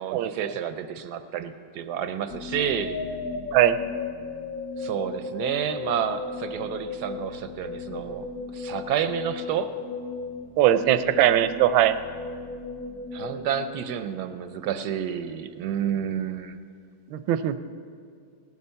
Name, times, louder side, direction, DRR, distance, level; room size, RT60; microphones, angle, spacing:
voice 1, 0.0-3.0 4.8-8.3 8.5-9.7 13.1-16.6, right 9 dB, 70° right, 10 dB, 1.0 m, -30 dB
sound 1, 2.3-14.4, left 4 dB, 60° left, 1.1 m, -35 dB
voice 2, 10.6-11.9 17.1-17.6, right 12 dB, 85° right, 12 dB, 1.4 m, -20 dB
17.5 x 9.7 x 5.6 m, 2.2 s
omnidirectional pair, 2.1 m